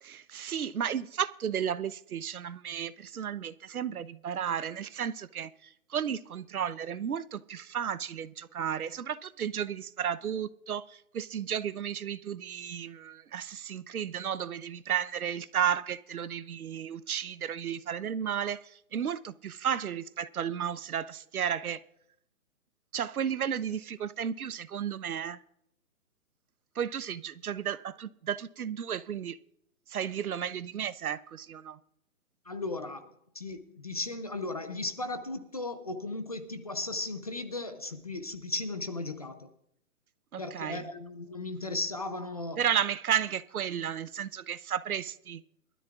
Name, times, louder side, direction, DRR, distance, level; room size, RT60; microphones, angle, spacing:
voice 1, 0.0-5.5 5.9-21.8 22.9-25.4 26.8-29.4 29.9-31.8 40.3-40.9 42.6-45.4, right 8 dB, 75° right, 0.9 m, -33 dB
voice 2, 32.5-39.5 40.4-42.6, left 2 dB, 25° left, 0.6 m, -36 dB
22.5 x 13.0 x 2.4 m
hypercardioid pair, 170°, 44 cm